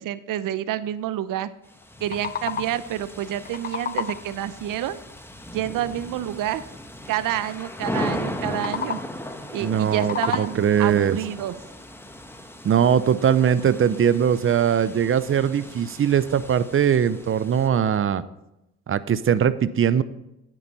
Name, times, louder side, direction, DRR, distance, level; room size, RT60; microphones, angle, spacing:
voice 1, 0.0-1.5 2.0-5.0 5.5-6.6 7.1-9.0 9.5-11.6, right 12 dB, 70° right, 15 dB, 0.7 m, -28 dB
sound 1, 1.6-17.7, left 1 dB, 5° left, 1.1 m, -37 dB
sound 2, 1.8-2.9 3.3-4.4 8.4-9.3 9.7-10.8, left 7 dB, 30° left, 0.4 m, -32 dB
voice 2, 9.6-11.2 12.6-18.2 18.9-20.0, right 8 dB, 40° right, 15 dB, 0.6 m, -21 dB
9.8 x 9.3 x 4.1 m, 0.88 s
supercardioid pair, 80°, 34 cm